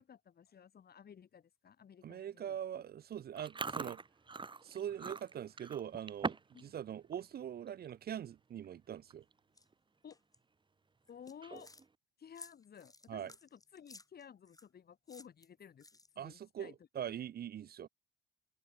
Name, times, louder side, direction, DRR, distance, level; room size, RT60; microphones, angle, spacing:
voice 1, 0.0-2.8 6.5-6.7 10.0-10.2 11.1-11.7 12.2-15.9 16.1-17.2, left 8 dB, 50° left, 3.3 m, -55 dB
voice 2, 2.0-4.0 4.6-9.2 13.1-13.3 16.2-17.9, right 9 dB, 50° right, 0.7 m, -43 dB
Chewing mastication, 3.4-6.6 6.9-7.2 7.7-7.9 8.6-8.7 9.0-9.3 9.7-9.8 11.3-11.8, right 4 dB, 25° right, 1.3 m, -42 dB
sound 1, 9.6-9.7 10.1-10.4 11.1-11.8 12.3-14.7 15.1-16.3, left 2 dB, 20° left, 7.9 m, -57 dB
cardioid pair, 90°, 20 cm